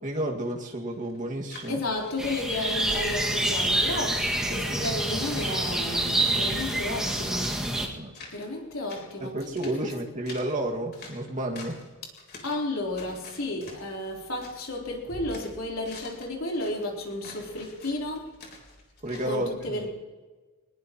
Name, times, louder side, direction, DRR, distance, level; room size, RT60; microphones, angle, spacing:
voice 1, 0.0-1.8 7.9-8.1 9.2-11.8 19.0-19.9, right 1 dB, 40° right, 0 dB, 2.1 m, -31 dB
sound 1, 0.9-3.1 3.4-3.9 4.3-6.4 6.6-7.8 8.1-8.6 8.9-11.9 12.1-12.6 13.0-14.8 15.1-19.3, left 3 dB, 50° left, 3.7 m, -48 dB
voice 2, 1.7-7.6 8.3-9.4 12.4-18.3 19.2-19.9, left 2 dB, 75° left, -1 dB, 3.9 m, -32 dB
sound 2, 2.2-7.9, right 1 dB, 5° right, 2.0 m, -27 dB
22.0 x 20.5 x 3.1 m, 1.3 s
head